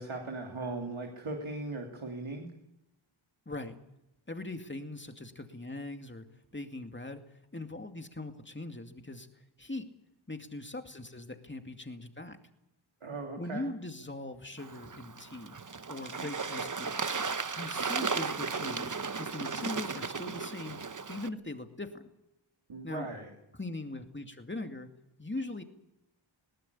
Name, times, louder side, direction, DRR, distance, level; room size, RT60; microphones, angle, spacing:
voice 1, 0.0-2.5 13.0-13.7 22.7-23.3, right 2 dB, 75° right, 1 dB, 3.4 m, -38 dB
voice 2, 3.5-3.8 4.3-6.3 6.5-9.9 10.3-12.4 13.4-15.6 15.9-17.2 17.6-20.8 21.1-22.0 22.8-23.1 23.5-24.9 25.2-25.6, left 2 dB, 25° left, 6 dB, 2.4 m, -41 dB
Bird / Water, 14.6-21.3, right 5 dB, 40° right, 1.0 m, -35 dB
21.0 x 19.0 x 8.5 m, 0.84 s
wide cardioid pair, 85°, 49 cm